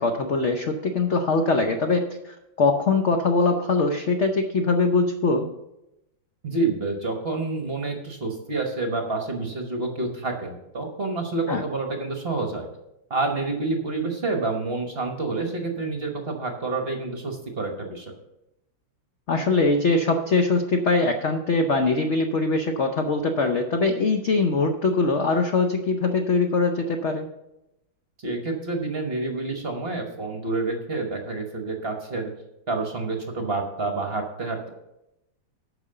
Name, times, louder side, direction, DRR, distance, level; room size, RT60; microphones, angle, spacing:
voice 1, 0.0-5.5 11.5-11.6 19.3-27.3, left 3 dB, 65° left, 5 dB, 0.7 m, -22 dB
voice 2, 6.4-12.7 13.1-18.1 28.2-32.3 32.7-34.7, right 3 dB, 40° right, 3 dB, 1.0 m, -28 dB
9.2 x 6.0 x 6.6 m, 0.89 s
omnidirectional pair, 2.1 m